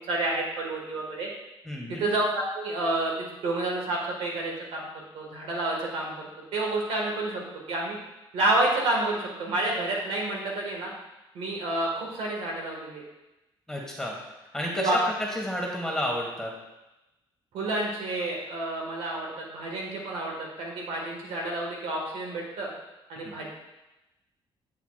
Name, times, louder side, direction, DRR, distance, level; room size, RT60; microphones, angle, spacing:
voice 1, 0.1-1.3 1.9-4.8 5.1-6.2 6.5-7.4 7.7-8.0 8.3-10.9 11.3-13.0 14.8-15.0 17.5-22.7 23.1-23.5, right 2 dB, 85° right, -1 dB, 1.7 m, -29 dB
voice 2, 1.6-2.0 13.7-16.5 23.1-23.3, equal, 5° left, -2 dB, 1.7 m, -31 dB
8.3 x 7.0 x 2.4 m, 0.99 s
cardioid pair, 100°, 10 cm